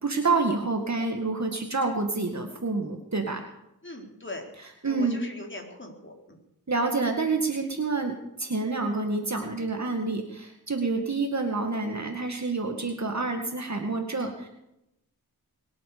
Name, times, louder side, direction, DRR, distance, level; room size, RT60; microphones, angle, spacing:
voice 1, 0.0-3.4 4.6-5.2 6.7-14.5, right 3 dB, 45° right, 3 dB, 2.2 m, -28 dB
voice 2, 3.8-4.5 4.8-6.4, left 1 dB, 30° left, 2 dB, 4.4 m, -40 dB
22.5 x 8.6 x 6.9 m, 0.82 s
wide cardioid pair, 60°, 38 cm